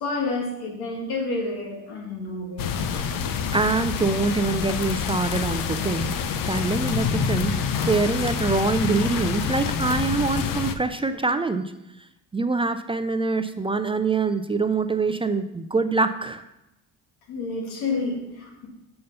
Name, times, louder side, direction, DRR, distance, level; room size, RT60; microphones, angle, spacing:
voice 1, 0.0-2.7 17.3-18.7, left 3 dB, 75° left, 1 dB, 2.0 m, -29 dB
sound 1, 2.6-10.7, left 6 dB, 60° left, 0.7 m, -27 dB
voice 2, 3.5-6.2 6.5-11.6 12.3-16.4, right 3 dB, 15° right, 9 dB, 0.4 m, -24 dB
6.5 x 5.7 x 5.4 m, 0.89 s
supercardioid pair, 80°, 38 cm